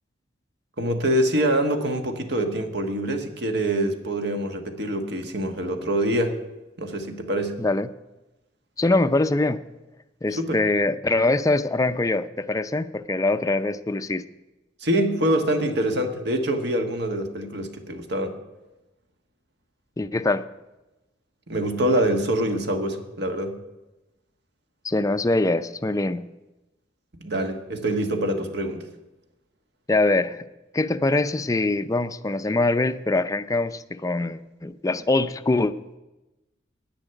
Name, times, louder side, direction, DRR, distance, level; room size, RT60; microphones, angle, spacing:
voice 1, 0.8-6.3 6.8-7.6 10.4-10.6 14.8-18.3 21.5-23.6 27.2-28.8, right 1 dB, 60° right, 6 dB, 1.5 m, -25 dB
voice 2, 7.6-7.9 8.8-9.6 10.2-14.2 20.0-20.4 24.8-26.3 29.9-30.5 30.7-35.7, left 2 dB, 20° left, 10 dB, 0.5 m, -23 dB
10.5 x 10.0 x 8.9 m, 1.0 s
head